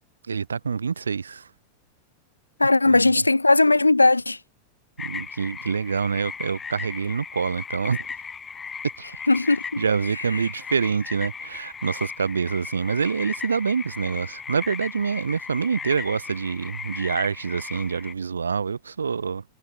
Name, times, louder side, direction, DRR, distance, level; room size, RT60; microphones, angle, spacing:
voice 1, 0.3-1.5 2.9-3.2 5.0-8.1 9.0-9.1 9.8-19.4, right 5 dB, 75° right, 3.6 m, -26 dB
voice 2, 2.6-4.4 9.3-9.6, left 2 dB, 80° left, 0.9 m, -18 dB
sound 1, 5.0-18.1, left 6 dB, 15° left, 3.8 m, -37 dB
figure-of-eight pair, 90°, 0 cm